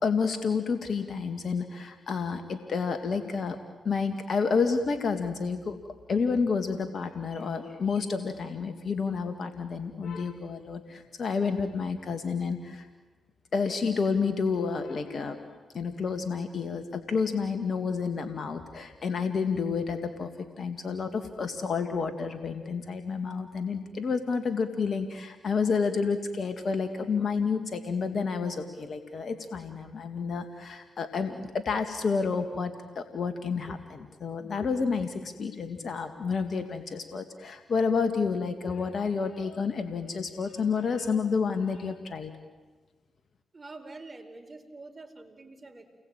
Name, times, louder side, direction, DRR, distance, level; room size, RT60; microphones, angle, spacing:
voice 1, 0.0-3.6 3.8-5.8 6.1-12.9 13.5-15.4 15.7-42.3, left 5 dB, 60° left, 8 dB, 2.2 m, -30 dB
voice 2, 43.5-45.8, right 3 dB, 45° right, 6 dB, 4.9 m, -46 dB
29.5 x 21.0 x 9.1 m, 1.3 s
supercardioid pair, 40°, 0 cm